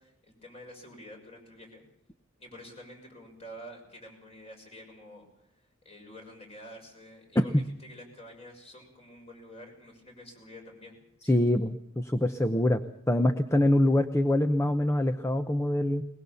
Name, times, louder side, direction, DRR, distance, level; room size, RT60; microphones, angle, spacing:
voice 1, 0.0-1.8 2.4-5.3 5.8-11.6, equal, 30° left, 2 dB, 6.5 m, -48 dB
voice 2, 11.3-12.8 13.1-16.0, left 1 dB, 15° left, 9 dB, 0.8 m, -24 dB
21.5 x 21.5 x 7.0 m, 0.75 s
head